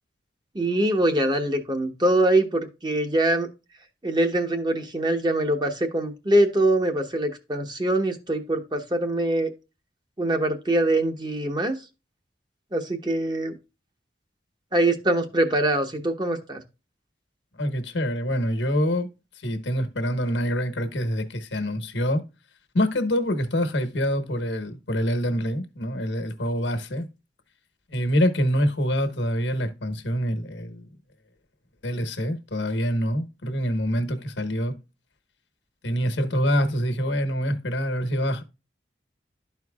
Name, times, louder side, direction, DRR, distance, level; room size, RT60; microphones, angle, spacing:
voice 1, 0.5-3.5 4.0-9.5 10.2-11.8 12.7-13.6 14.7-16.6, right 1 dB, 25° right, 1.0 m, -23 dB
voice 2, 17.6-19.1 19.4-22.2 22.7-27.1 27.9-30.8 31.8-34.8 35.8-38.4, equal, 80° left, 1.2 m, -25 dB
12.5 x 4.6 x 2.3 m
head